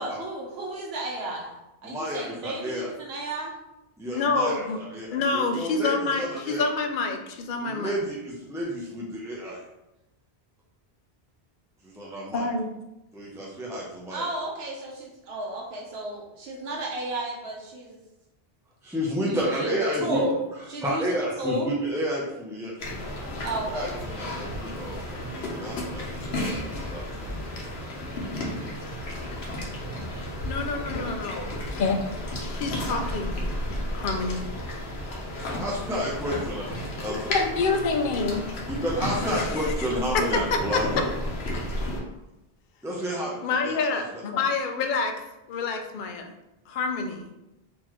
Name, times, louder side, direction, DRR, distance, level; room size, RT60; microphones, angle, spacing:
voice 1, 0.0-1.5 1.8-3.5 14.1-18.0 19.3-20.3 20.7-21.7 23.4-23.9, right 1 dB, 80° right, -1 dB, 0.9 m, -33 dB
voice 2, 1.8-2.9 4.0-6.7 7.6-9.6 11.8-12.5 13.1-14.3 18.8-20.3 20.8-22.7 23.7-27.0 35.6-36.6 37.0-37.3 38.7-40.9 42.8-43.3 43.6-44.0, equal, 5° right, -5 dB, 0.4 m, -31 dB
voice 3, 4.1-4.8 5.1-7.9 12.3-12.7 30.4-32.0 32.4-33.4 33.9-34.4 37.1-38.4 39.3-39.7 40.1-40.2 40.7-40.8 43.4-45.2 45.5-46.3 46.7-47.3, left 4 dB, 60° left, 4 dB, 0.7 m, -27 dB
sound 1, 22.8-42.0, left 1 dB, 85° left, 1.1 m, -33 dB
3.9 x 2.9 x 3.0 m, 0.94 s
omnidirectional pair, 1.0 m